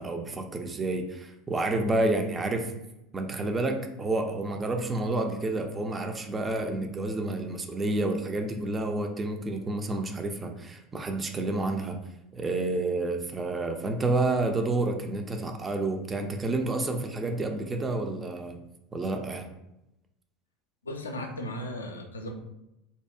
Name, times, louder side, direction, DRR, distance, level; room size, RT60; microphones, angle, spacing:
voice 1, 0.0-2.7 3.1-12.0 12.3-18.6 18.9-19.5, right 2 dB, 20° right, 4 dB, 0.3 m, -29 dB
voice 2, 20.8-22.3, left 1 dB, 80° left, 4 dB, 0.3 m, -36 dB
2.7 x 2.0 x 2.4 m, 0.87 s
figure-of-eight pair, 75°, 0 cm